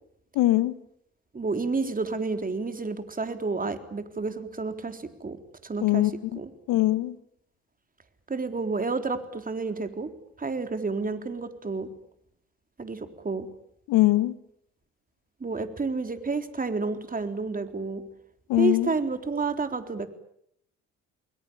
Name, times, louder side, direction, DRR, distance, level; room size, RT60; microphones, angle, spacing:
voice 1, 0.3-0.7 5.8-6.1 6.7-7.1 13.9-14.3 18.5-18.9, left 17 dB, 70° left, 16 dB, 1.5 m, -21 dB
voice 2, 1.3-6.5 8.3-10.1 10.4-11.9 12.8-13.5 15.4-18.0 18.5-20.1, right 4 dB, 25° right, 8 dB, 3.8 m, -30 dB
29.5 x 21.5 x 8.7 m, 0.71 s
hypercardioid pair, 60°, 33 cm